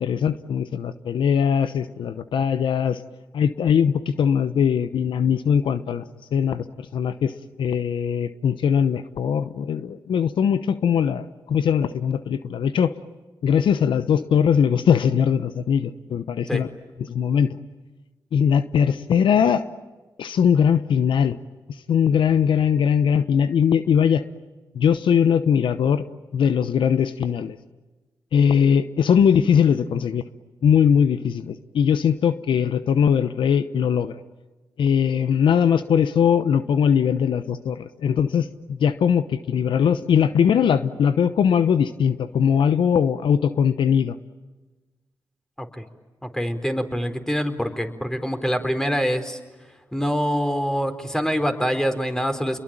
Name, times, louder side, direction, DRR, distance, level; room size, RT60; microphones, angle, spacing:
voice 1, 0.0-3.0 3.3-6.0 6.3-7.3 7.6-12.9 13.4-16.7 17.0-17.6 18.3-19.6 20.2-21.4 21.9-24.2 24.7-26.0 26.3-27.6 28.3-30.2 30.6-34.1 34.8-44.1, left 7 dB, 75° left, 12 dB, 0.9 m, -20 dB
voice 2, 46.2-49.4 49.9-52.6, equal, 5° left, 7 dB, 4.3 m, -25 dB
29.0 x 22.5 x 9.0 m, 1.2 s
supercardioid pair, 40°, 9 cm